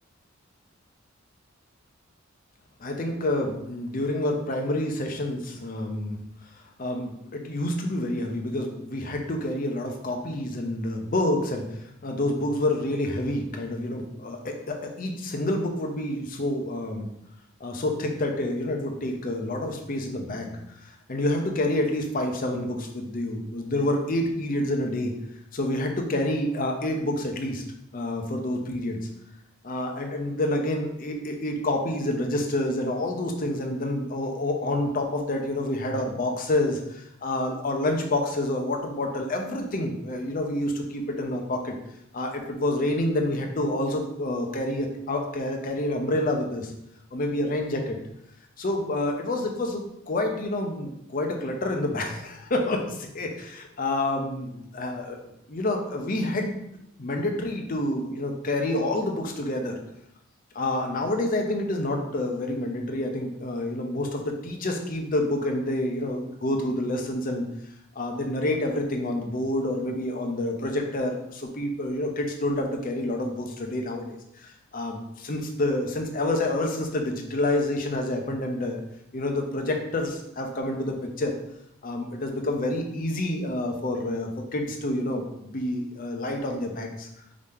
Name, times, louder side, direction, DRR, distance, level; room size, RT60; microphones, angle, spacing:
voice 1, 2.8-6.2 6.8-17.1 17.6-25.1 25.5-27.6 27.9-29.1 29.6-41.8 42.1-46.7 47.1-48.0 48.6-55.2 55.5-56.7 57.0-59.8 60.5-67.5 67.9-78.8 79.1-81.3 81.8-87.1, left 1 dB, 40° left, 3 dB, 0.6 m, -28 dB
4.9 x 2.8 x 3.6 m, 0.80 s
head